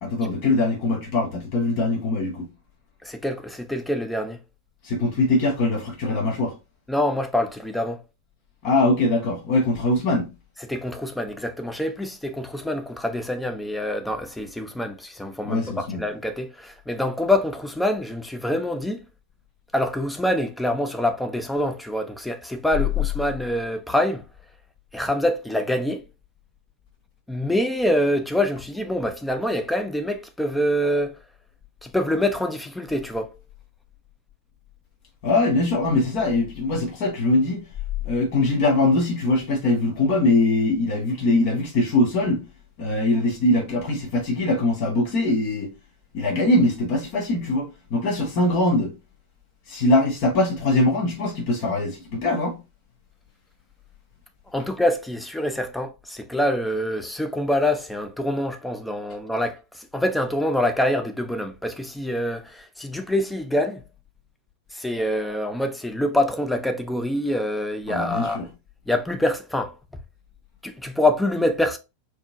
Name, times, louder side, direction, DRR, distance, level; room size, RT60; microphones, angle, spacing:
voice 1, 0.0-2.4 4.8-6.5 8.6-10.3 15.4-16.0 35.2-37.6 38.0-42.4 42.8-45.7 46.1-48.9 49.7-52.6 67.9-68.4, left 2 dB, 45° left, 1.2 m, -22 dB
voice 2, 3.0-4.4 6.9-8.0 10.6-19.0 19.7-24.2 24.9-26.0 27.3-31.2 31.8-33.3 54.5-63.8 64.7-68.4 68.9-69.7 70.6-71.8, left 1 dB, 5° left, 0.6 m, -25 dB
4.3 x 2.9 x 2.5 m
figure-of-eight pair, 90°, 0 cm